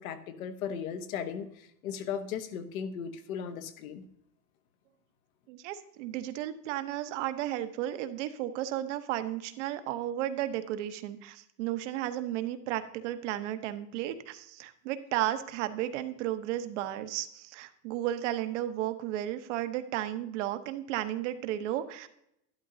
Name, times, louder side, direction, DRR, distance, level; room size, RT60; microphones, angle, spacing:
voice 1, 0.0-4.1, left 7 dB, 60° left, 9 dB, 1.2 m, -37 dB
voice 2, 5.5-22.1, right 13 dB, 50° right, 10 dB, 1.0 m, -34 dB
12.0 x 11.0 x 2.7 m, 0.78 s
supercardioid pair, 150°, 47 cm